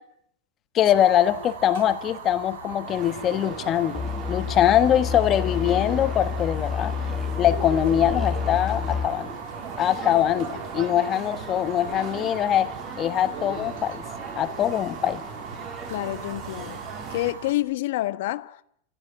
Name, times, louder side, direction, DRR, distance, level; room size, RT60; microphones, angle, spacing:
voice 1, 0.7-6.9 7.4-9.3 9.8-12.7 13.0-14.0 14.3-15.2, left 11 dB, 20° left, 1.4 m, -23 dB
Fire, 0.9-17.5, right 6 dB, 85° right, 3.6 m, -40 dB
sound 1, 2.9-17.3, right 5 dB, 25° right, 2.8 m, -38 dB
sound 2, 3.9-9.1, left 7 dB, ahead, 1.5 m, -29 dB
voice 2, 15.9-16.8 17.1-18.6, left 16 dB, 55° left, 1.4 m, -28 dB
29.5 x 16.0 x 10.0 m
supercardioid pair, 175°, 0 cm